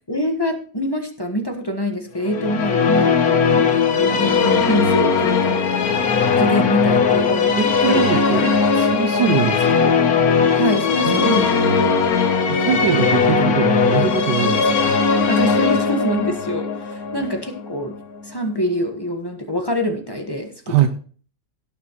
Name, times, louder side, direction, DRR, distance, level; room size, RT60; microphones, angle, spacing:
voice 1, 0.1-5.6 6.4-7.6 7.9-8.7 9.2-9.4 10.5-11.6 15.3-17.9 18.2-20.9, equal, 15° left, 4 dB, 1.3 m, -25 dB
sound 1, 2.2-18.3, left 5 dB, 60° left, 1.5 m, -18 dB
voice 2, 7.6-8.5 8.8-9.7 11.0-12.0 12.5-14.9 20.7-20.9, right 10 dB, 90° right, 7 dB, 1.4 m, -23 dB
17.5 x 7.4 x 3.1 m, 0.41 s
omnidirectional pair, 1.8 m